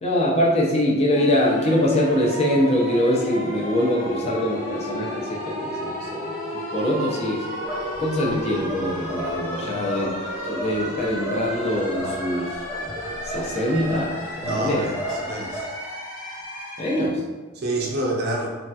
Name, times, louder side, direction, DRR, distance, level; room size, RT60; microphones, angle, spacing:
voice 1, 0.0-6.3 6.7-7.5 8.0-12.5 13.2-14.8 16.8-17.2, left 1 dB, 30° left, -2 dB, 0.4 m, -23 dB
sound 1, 1.1-17.1, equal, 80° left, 1.2 m, -32 dB
sound 2, 7.6-15.6, right 1 dB, 5° right, 0.8 m, -34 dB
voice 2, 14.4-15.7 17.5-18.6, right 1 dB, 45° right, -1 dB, 0.5 m, -28 dB
3.1 x 2.7 x 2.3 m, 1.3 s
head